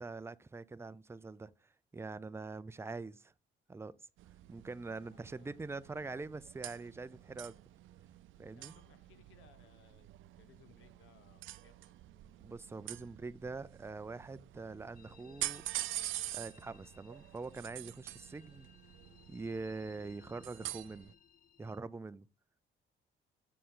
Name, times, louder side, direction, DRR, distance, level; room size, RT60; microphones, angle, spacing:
voice 1, 0.0-1.5 1.9-3.3 3.7-3.9 4.5-7.5 8.4-8.7 12.4-15.6 16.3-18.7 19.3-21.1 21.6-22.3, right 3 dB, 15° right, 0.4 m, -44 dB
sound 1, 4.2-21.1, right 15 dB, 80° right, 0.5 m, -46 dB
voice 2, 5.0-5.6 8.5-10.1 10.4-12.0, left 8 dB, 85° left, 1.1 m, -65 dB
sound 2, 14.9-21.8, left 7 dB, 45° left, 0.7 m, -63 dB
6.9 x 6.4 x 3.8 m
cardioid pair, 90°, 20 cm